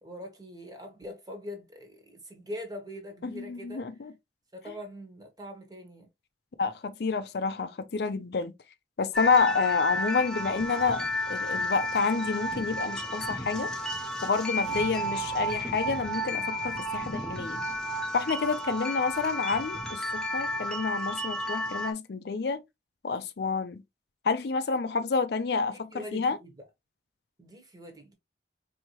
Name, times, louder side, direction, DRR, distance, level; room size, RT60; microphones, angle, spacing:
voice 1, 0.0-3.9 4.5-6.1 9.5-9.7 25.7-26.6 27.4-28.1, left 1 dB, 20° right, 1.1 m, -43 dB
voice 2, 3.2-4.1 6.6-8.5 9.0-13.7 14.2-17.6 18.1-22.6 23.0-23.8 24.2-26.4, left 4 dB, 60° left, 0.4 m, -29 dB
sound 1, 9.1-21.9, equal, 5° left, 0.7 m, -32 dB
sound 2, 14.4-18.8, equal, 90° right, 1.0 m, -48 dB
4.4 x 2.7 x 3.0 m
head